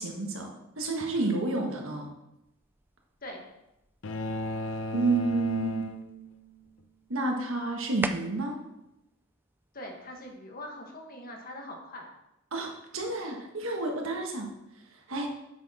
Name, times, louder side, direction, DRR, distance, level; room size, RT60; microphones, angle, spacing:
voice 1, 0.0-2.1 4.9-5.9 7.1-8.6 12.5-14.5 14.9-15.3, right 2 dB, 75° right, 1 dB, 1.5 m, -30 dB
sound 1, 2.4-10.4, right 2 dB, 10° right, 0.3 m, -45 dB
sound 2, 4.0-6.6, left 1 dB, 65° left, 0.6 m, -35 dB
voice 2, 9.7-12.1, left 1 dB, 45° left, 1 dB, 1.6 m, -42 dB
8.0 x 6.2 x 4.2 m, 0.89 s
head